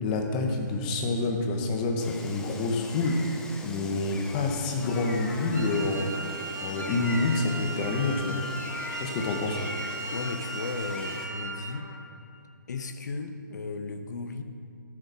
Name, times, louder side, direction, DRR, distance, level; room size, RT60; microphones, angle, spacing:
voice 1, 0.0-3.2 3.6-6.1 6.6-8.4 9.0-9.6, left 3 dB, 25° left, 3 dB, 1.0 m, -27 dB
Gull seagull, 2.0-11.3, left 2 dB, 5° left, 0.5 m, -42 dB
Trumpet, 4.8-12.0, left 3 dB, 80° left, 1.5 m, -45 dB
Wind instrument woodwind instrument, 5.5-11.9, right 3 dB, 60° right, 1.5 m, -38 dB
voice 2, 10.1-11.9 12.7-14.4, left 3 dB, 60° left, 8 dB, 1.0 m, -35 dB
13.0 x 6.3 x 6.2 m, 2.5 s
hypercardioid pair, 160°, 11 cm